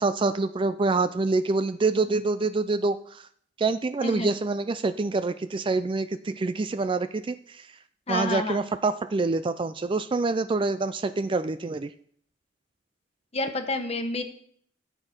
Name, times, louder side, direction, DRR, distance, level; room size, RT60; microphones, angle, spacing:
voice 1, 0.0-3.3 3.6-7.8 8.1-11.9, right 3 dB, 25° right, 12 dB, 0.3 m, -26 dB
voice 2, 4.0-4.3 8.1-8.6 13.3-14.2, left 2 dB, 35° left, 6 dB, 1.2 m, -29 dB
14.0 x 7.9 x 4.4 m, 0.62 s
head